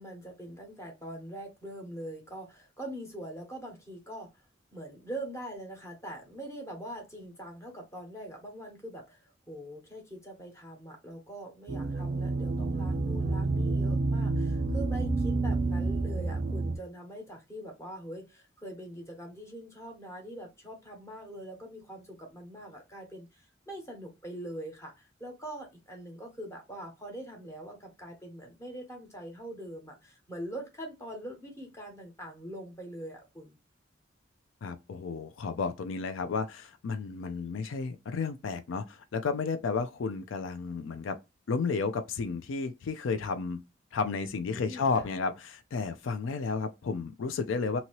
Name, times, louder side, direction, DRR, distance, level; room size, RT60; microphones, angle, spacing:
voice 1, 0.0-4.4 4.7-33.6 44.5-45.1, right 1 dB, 15° left, 1.0 m, -43 dB
sound 1, 11.7-16.8, right 3 dB, 35° right, 0.4 m, -29 dB
voice 2, 34.6-41.2 41.5-43.6 43.9-47.8, left 4 dB, 80° left, 0.4 m, -32 dB
2.8 x 2.7 x 2.9 m
head